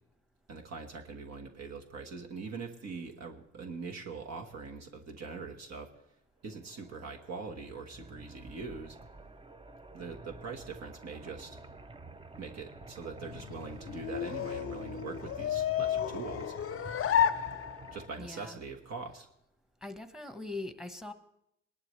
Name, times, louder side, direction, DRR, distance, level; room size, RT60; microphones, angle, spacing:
voice 1, 0.5-5.9 6.4-9.0 9.9-11.6 12.4-16.5 17.9-19.3, right 4 dB, 60° right, 2 dB, 1.4 m, -42 dB
sound 1, 6.5-18.1, right 2 dB, 15° right, 0.6 m, -50 dB
sound 2, 13.2-18.2, left 9 dB, 45° left, 0.6 m, -32 dB
voice 2, 18.2-18.6 19.8-21.1, left 2 dB, ahead, 8 dB, 1.1 m, -41 dB
20.5 x 11.5 x 3.2 m, 0.78 s
cardioid pair, 90°, 30 cm